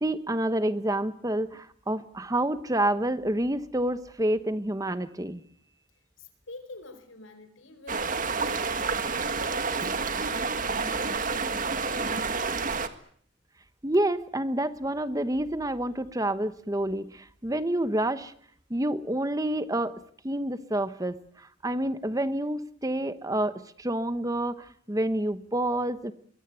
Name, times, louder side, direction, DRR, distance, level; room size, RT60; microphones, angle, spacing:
voice 1, 0.0-5.4 13.8-18.3 18.7-19.9 20.2-26.1, right 1 dB, 15° right, 12 dB, 1.1 m, -28 dB
voice 2, 6.2-12.8, left 2 dB, 75° left, 11 dB, 4.8 m, -48 dB
sound 1, 7.9-12.9, right 4 dB, 40° right, 1.7 m, -29 dB
23.5 x 21.5 x 9.2 m, 0.62 s
head